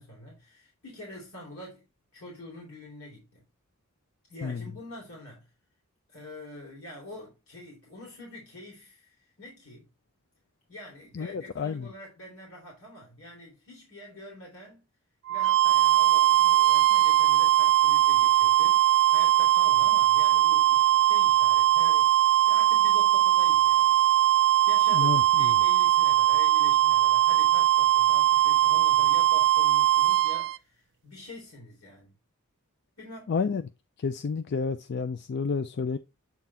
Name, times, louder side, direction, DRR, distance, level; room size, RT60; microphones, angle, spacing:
voice 1, 0.0-1.8 2.1-3.4 4.3-5.5 6.1-9.9 10.7-14.9 15.3-24.0 24.7-32.2 33.0-33.3, left 1 dB, 70° left, 3.4 m, -46 dB
voice 2, 11.1-11.9 24.9-25.5 33.3-33.6 34.0-36.0, left 5 dB, 50° left, 0.4 m, -30 dB
sound 1, 15.3-30.6, right 13 dB, 55° right, 0.6 m, -21 dB
8.4 x 3.9 x 4.2 m
head